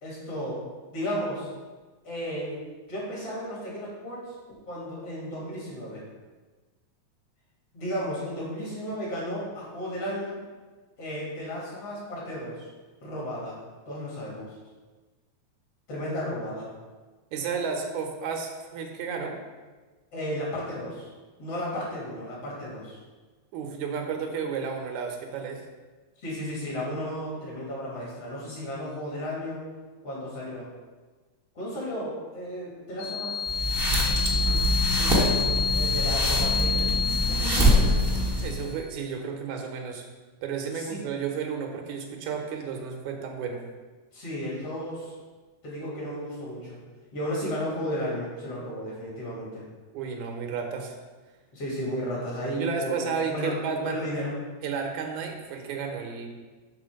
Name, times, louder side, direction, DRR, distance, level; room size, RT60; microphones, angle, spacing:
voice 1, 0.0-0.6 0.9-1.5 2.0-4.3 4.7-6.0 7.7-10.4 11.0-12.7 13.0-13.6 13.9-14.6 15.9-16.7 20.1-21.1 21.4-23.0 26.2-29.6 30.0-30.7 31.5-33.4 35.0-37.0 37.3-38.1 40.7-41.0 44.1-45.1 45.6-46.8 47.1-49.6 51.5-54.3, equal, 55° left, -5 dB, 3.2 m, -34 dB
voice 2, 17.3-19.4 23.5-25.6 37.6-37.7 38.4-40.0 40.4-43.6 49.9-51.0 52.5-54.0 54.6-56.3, right 6 dB, 80° right, 3 dB, 2.3 m, -32 dB
sound 1, 33.0-38.7, left 6 dB, 80° left, 2.0 m, -29 dB
sound 2, 33.4-38.7, equal, 10° right, 1.0 m, -24 dB
6.9 x 4.2 x 6.3 m, 1.3 s
omnidirectional pair, 3.3 m